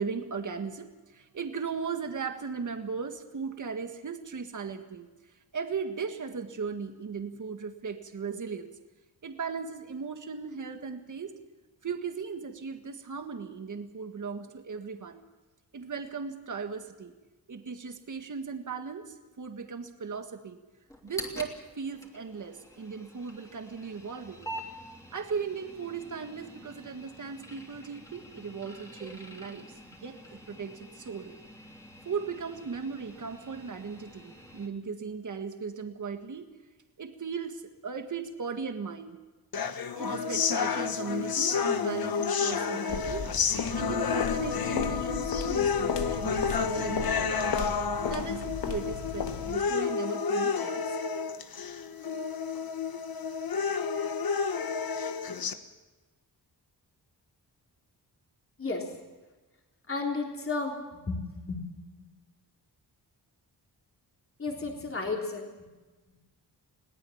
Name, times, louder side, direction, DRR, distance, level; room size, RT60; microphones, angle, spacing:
voice 1, 0.0-5.1 5.5-8.7 9.2-11.3 11.8-15.2 15.7-17.1 17.5-20.6 21.0-24.5 25.1-31.3 32.1-36.5 37.0-39.2 39.9-43.3 43.7-47.5 48.1-51.0, right 5 dB, 45° right, 6 dB, 1.8 m, -37 dB
sound 1, 20.9-34.7, equal, 10° left, 3.0 m, -47 dB
sound 2, 39.5-55.5, left 6 dB, 60° left, 1.4 m, -30 dB
sound 3, 42.9-49.7, left 7 dB, 85° left, 1.5 m, -36 dB
voice 2, 59.9-60.8 61.1-61.2 61.5-61.6 64.4-65.5, left 3 dB, 30° left, 0 dB, 3.4 m, -32 dB
21.5 x 17.5 x 7.2 m, 1.2 s
wide cardioid pair, 135°, 41 cm